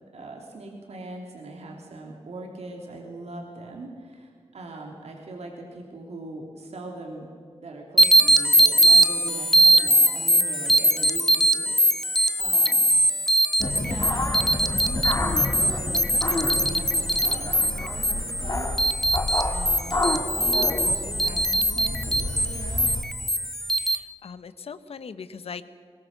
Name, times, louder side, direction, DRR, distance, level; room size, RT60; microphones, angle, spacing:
voice 1, 0.1-7.3 7.6-12.8 13.6-19.2 19.5-20.1 20.3-22.9, right 2 dB, 85° right, 1 dB, 3.0 m, -40 dB
sound 1, 8.0-24.0, right 1 dB, 5° left, 0.7 m, -21 dB
sound 2, 13.6-23.0, left 2 dB, 35° left, 2.9 m, -30 dB
voice 2, 23.8-25.6, left 6 dB, 70° left, 13 dB, 0.9 m, -40 dB
22.0 x 21.0 x 6.6 m, 2.1 s
wide cardioid pair, 155°, 11 cm